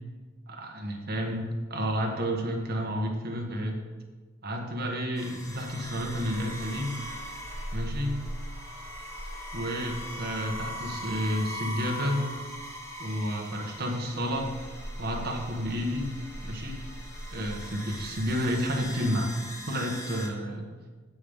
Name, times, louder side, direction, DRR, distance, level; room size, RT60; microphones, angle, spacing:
voice 1, 0.5-3.8 4.4-6.9 7.7-8.2 9.5-12.3 13.0-14.5 15.0-16.8 17.3-19.3 19.7-20.7, equal, 45° right, 1 dB, 1.3 m, -31 dB
sound 1, 5.2-20.3, equal, 15° left, 1.4 m, -39 dB
15.5 x 5.3 x 3.6 m, 1.4 s
head